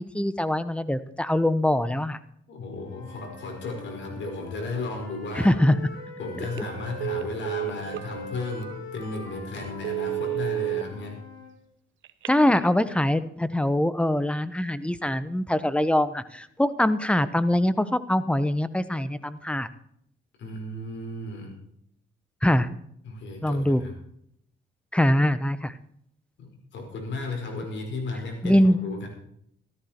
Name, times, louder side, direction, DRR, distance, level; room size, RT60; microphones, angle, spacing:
voice 1, 0.0-2.2 5.4-5.8 6.6-6.7 12.3-19.7 22.4-22.7 23.4-23.8 24.9-25.7 28.4-28.8, left 1 dB, 5° left, 14 dB, 1.0 m, -23 dB
voice 2, 2.5-5.5 6.2-11.2 20.4-21.6 23.0-24.0 26.4-29.1, left 2 dB, 65° left, 2 dB, 5.1 m, -34 dB
Wind instrument woodwind instrument, 2.7-7.2 7.8-11.5, left 2 dB, 85° left, 5.4 m, -43 dB
Telephone, 6.4-6.7 7.0-8.1 8.6-8.7 9.1-9.3 9.7-10.8 12.0-12.7, right 17 dB, 75° right, 1.0 m, -30 dB
14.0 x 13.5 x 4.4 m, 0.71 s
cardioid pair, 90°, 20 cm